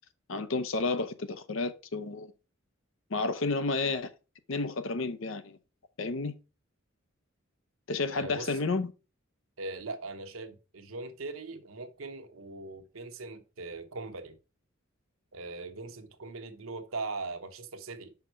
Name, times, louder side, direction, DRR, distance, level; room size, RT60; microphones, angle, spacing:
voice 1, 0.3-2.3 3.1-4.1 4.5-5.6 6.0-6.3 7.9-8.9, left 3 dB, 70° left, 0.7 m, -31 dB
voice 2, 8.1-8.6 9.6-14.4 15.3-18.1, right 3 dB, 80° right, 1.0 m, -40 dB
5.7 x 5.3 x 4.4 m
head